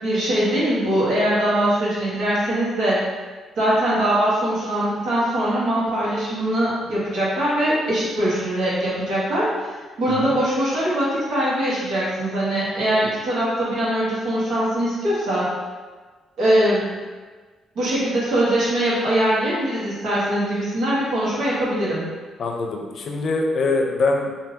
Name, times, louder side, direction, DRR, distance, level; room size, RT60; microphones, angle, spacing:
voice 1, 0.0-3.0 3.6-9.5 10.0-15.5 16.4-16.9 17.7-22.0, right 1 dB, 75° right, -8 dB, 1.5 m, -22 dB
voice 2, 22.4-24.3, left 3 dB, 55° left, 1 dB, 0.5 m, -23 dB
3.6 x 2.8 x 2.8 m, 1.4 s
cardioid pair, 85°, 0 cm